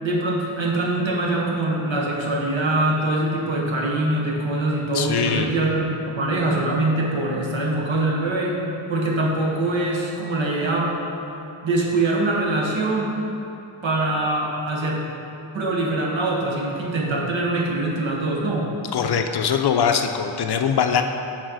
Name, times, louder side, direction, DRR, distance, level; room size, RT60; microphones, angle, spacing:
voice 1, 0.0-8.6 8.9-11.0 11.6-13.2 13.8-15.1 15.5-18.7, right 2 dB, 65° right, -2 dB, 1.3 m, -23 dB
voice 2, 4.9-5.5 18.9-21.0, left 7 dB, 55° left, 5 dB, 0.5 m, -22 dB
6.3 x 4.2 x 6.2 m, 2.7 s
wide cardioid pair, 125°, 49 cm